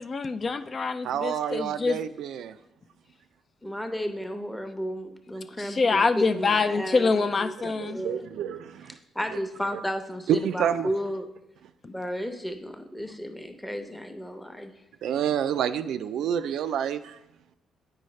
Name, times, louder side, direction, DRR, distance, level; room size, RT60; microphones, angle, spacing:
voice 1, 0.0-2.0 5.6-8.0, left 4 dB, 40° left, 10 dB, 0.3 m, -25 dB
voice 2, 1.0-2.6 7.1-7.2 7.6-9.0 10.3-10.9 15.0-17.2, right 9 dB, 75° right, 11 dB, 0.3 m, -28 dB
voice 3, 3.6-8.2 9.1-11.3 11.8-14.7, equal, 5° left, 6 dB, 0.7 m, -33 dB
9.0 x 4.6 x 3.2 m, 0.86 s
cardioid pair, 90°, 0 cm